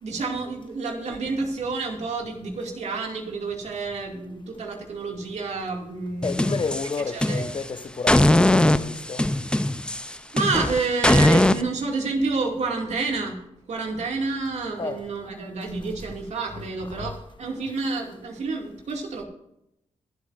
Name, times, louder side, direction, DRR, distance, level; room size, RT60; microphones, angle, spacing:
voice 1, 0.0-6.4 7.1-7.4 9.9-13.4 13.7-19.2, right 3 dB, 70° right, 2.4 m, -29 dB
voice 2, 6.2-9.2 14.8-15.0 16.9-17.1, left 4 dB, 45° left, 1.1 m, -30 dB
sound 1, 6.2-7.7 8.1-11.6, left 1 dB, 10° left, 0.6 m, -20 dB
21.5 x 8.2 x 2.6 m
cardioid pair, 70°, 12 cm